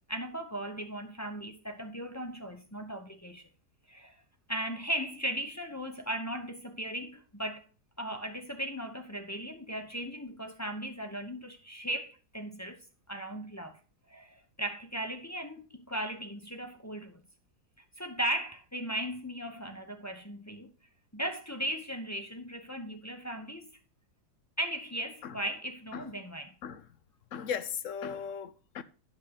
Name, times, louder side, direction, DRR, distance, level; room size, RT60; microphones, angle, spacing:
voice 1, 0.1-3.5 3.9-4.1 4.5-7.6 8.0-13.8 14.1-17.2 18.0-20.7 21.1-23.7 24.6-26.5, right 1 dB, 15° left, 0.6 m, -37 dB
voice 2, 27.3-28.8, left 7 dB, 65° left, 0.9 m, -37 dB
11.0 x 5.9 x 3.9 m
omnidirectional pair, 1.8 m